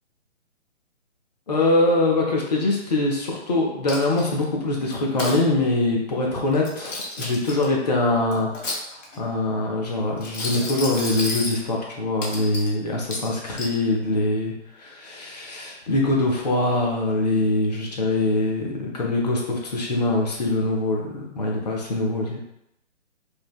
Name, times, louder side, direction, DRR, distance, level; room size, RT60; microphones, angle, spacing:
voice 1, 1.5-8.7 9.2-22.4, left 2 dB, 35° left, -1 dB, 0.5 m, -23 dB
Coin (dropping), 3.9-4.4 4.9-5.4 6.5-7.7 8.3-9.2 10.2-11.6 12.2-12.7 13.1-13.8, left 2 dB, 75° left, 0.9 m, -31 dB
3.2 x 2.0 x 2.3 m, 0.82 s
figure-of-eight pair, 145°, 38 cm